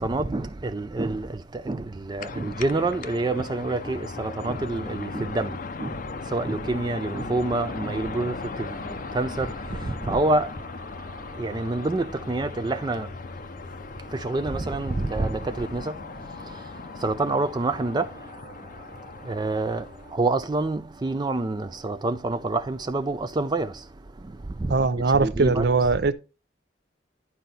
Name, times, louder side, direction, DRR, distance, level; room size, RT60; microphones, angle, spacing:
voice 1, 0.0-25.7, right 2 dB, 25° right, 0.4 m, -28 dB
sound 1, 2.2-20.2, left 4 dB, 50° left, 0.5 m, -38 dB
voice 2, 24.7-26.1, right 4 dB, 60° right, 0.6 m, -21 dB
11.0 x 4.5 x 4.0 m
head